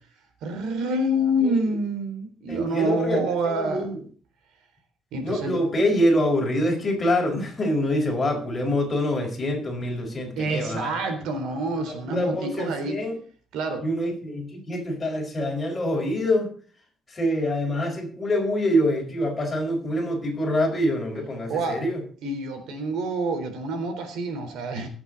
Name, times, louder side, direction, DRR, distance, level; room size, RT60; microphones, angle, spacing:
voice 1, 0.4-3.9 5.1-5.6 10.3-13.0 13.5-13.9 21.5-21.8 22.2-24.9, right 1 dB, 85° right, 7 dB, 3.7 m, -27 dB
voice 2, 2.5-4.0 5.2-10.9 11.9-13.1 13.8-16.5 17.1-22.0, left 1 dB, 20° left, 1 dB, 4.7 m, -25 dB
21.0 x 8.0 x 3.9 m, 0.44 s
cardioid pair, 165°, 0 cm